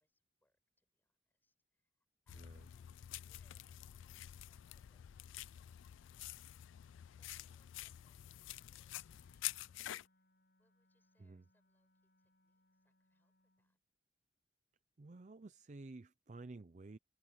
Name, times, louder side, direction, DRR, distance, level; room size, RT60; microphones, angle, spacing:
voice 1, 0.0-10.3 10.6-13.8, left 1 dB, 10° left, 6.0 m, -83 dB
sound 1, 2.3-10.1, left 14 dB, 85° left, 0.3 m, -48 dB
voice 2, 2.3-2.7 11.2-11.5 15.0-17.0, right 2 dB, 40° right, 0.5 m, -52 dB
Wind instrument woodwind instrument, 8.9-13.8, left 2 dB, 50° left, 6.9 m, -76 dB
head